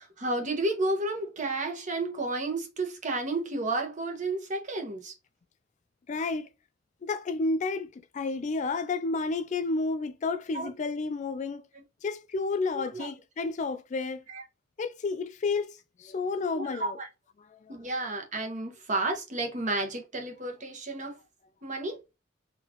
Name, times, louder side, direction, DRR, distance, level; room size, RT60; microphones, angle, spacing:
voice 1, 0.0-5.1 10.5-10.7 11.7-11.8 12.7-13.1 14.3-14.4 16.5-17.1 17.7-21.2 21.6-22.0, right 2 dB, 40° right, 1.2 m, -32 dB
voice 2, 6.1-6.5 7.0-11.6 12.0-14.2 14.8-15.7 16.0-17.0 17.5-17.8, left 3 dB, 40° left, 0.3 m, -31 dB
4.2 x 2.8 x 2.9 m
head